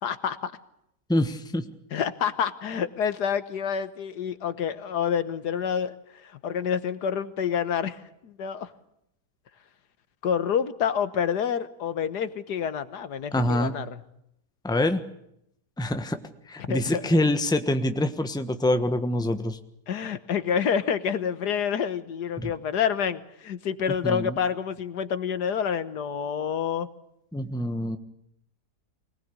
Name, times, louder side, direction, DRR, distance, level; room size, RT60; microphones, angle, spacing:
voice 1, 0.0-0.5 1.9-8.7 10.2-14.0 16.7-17.0 19.9-26.9, left 7 dB, 80° left, 13 dB, 1.7 m, -28 dB
voice 2, 1.1-1.6 13.3-13.7 14.6-15.0 15.8-16.2 16.5-19.6 22.4-22.5 24.0-24.4 27.3-28.0, left 1 dB, 5° left, 8 dB, 1.1 m, -25 dB
24.5 x 19.0 x 8.5 m, 0.78 s
omnidirectional pair, 1.7 m